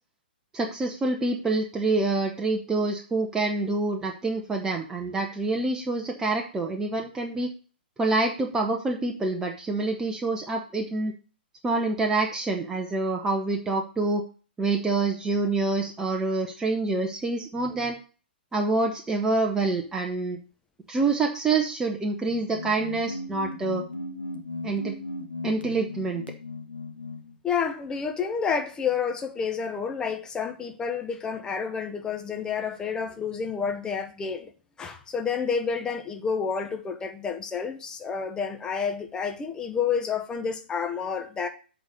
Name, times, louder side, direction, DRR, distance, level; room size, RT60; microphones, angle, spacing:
voice 1, 0.5-7.5 8.0-11.1 11.6-14.2 14.6-18.0 18.5-20.4 20.9-23.8 24.6-24.9 25.4-26.2, right 3 dB, 10° right, 0.9 m, -26 dB
sound 1, 22.2-27.4, left 2 dB, 80° left, 1.4 m, -37 dB
voice 2, 27.4-34.5 34.8-41.5, left 6 dB, 15° left, 1.0 m, -29 dB
8.1 x 4.2 x 6.4 m
figure-of-eight pair, 115°, 5 cm